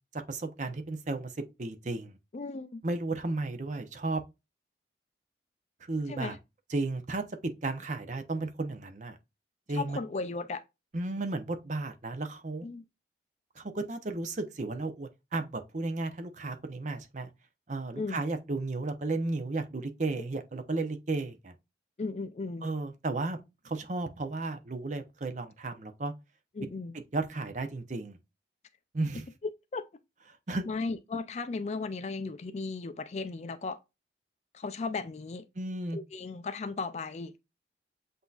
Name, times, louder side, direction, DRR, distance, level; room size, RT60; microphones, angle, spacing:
voice 1, 0.1-1.3 1.6-2.2 2.8-4.2 5.9-6.4 6.7-9.2 9.7-10.0 10.9-12.7 13.6-17.3 17.7-21.5 22.6-26.1 27.1-28.2 28.9-29.3 30.5-30.7 35.6-36.0, right 2 dB, 45° right, 0.7 m, -34 dB
voice 2, 2.3-2.8 6.1-6.4 9.7-10.6 12.6-12.8 17.9-18.2 22.0-22.7 26.6-27.0 29.4-29.8 30.7-33.8 34.5-35.5 35.9-37.3, left 3 dB, 40° left, 0.4 m, -36 dB
7.8 x 2.7 x 2.3 m
head